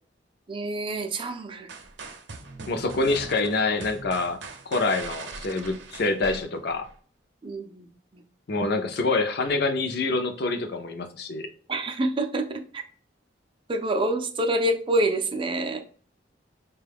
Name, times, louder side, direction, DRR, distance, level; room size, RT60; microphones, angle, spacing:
voice 1, 0.5-1.7 7.4-7.9 11.7-12.8 13.7-15.8, right 1 dB, 30° right, 6 dB, 0.4 m, -27 dB
sound 1, 1.7-6.9, right 3 dB, 70° right, 0.6 m, -41 dB
voice 2, 2.7-6.9 8.5-11.5, left 3 dB, 60° left, 7 dB, 0.5 m, -26 dB
4.5 x 2.3 x 3.4 m, 0.43 s
head